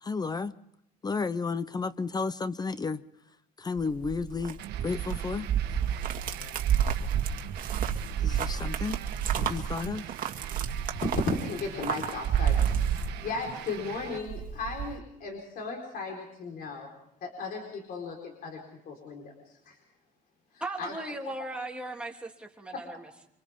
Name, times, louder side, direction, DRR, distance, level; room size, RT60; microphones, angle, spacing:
voice 1, 0.0-0.5 1.0-3.0 3.6-5.5 8.2-9.0 9.4-10.0, left 4 dB, 25° left, 15 dB, 0.7 m, -32 dB
sound 1, 3.8-13.7 14.0-14.9, right 8 dB, 55° right, 2.2 m, -30 dB
sound 2, 4.6-14.2, right 11 dB, 80° right, 1.4 m, -43 dB
voice 2, 10.7-16.9 17.2-19.8 20.5-20.9 22.7-22.8, left 3 dB, 60° left, 1 dB, 4.5 m, -36 dB
voice 3, 20.6-23.3, right 2 dB, 5° right, 0 dB, 3.1 m, -38 dB
27.5 x 25.5 x 3.7 m, 0.75 s
cardioid pair, 110°, 17 cm